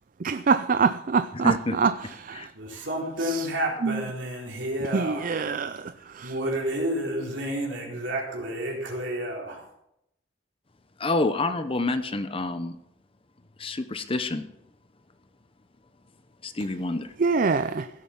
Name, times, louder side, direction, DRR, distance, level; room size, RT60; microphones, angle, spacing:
voice 1, 0.2-1.9 2.2-2.5 3.2-3.5 3.8-4.0 4.9-5.9 6.2-6.3 17.2-17.9, right 5 dB, 45° right, 12 dB, 0.4 m, -24 dB
voice 2, 1.4-1.7 2.3-2.5 11.0-12.8 13.6-14.5 16.4-17.1, left 2 dB, 30° left, 10 dB, 0.8 m, -27 dB
voice 3, 2.5-5.4 6.2-9.6, right 1 dB, 70° right, -1 dB, 4.1 m, -30 dB
16.0 x 8.1 x 5.9 m, 0.80 s
head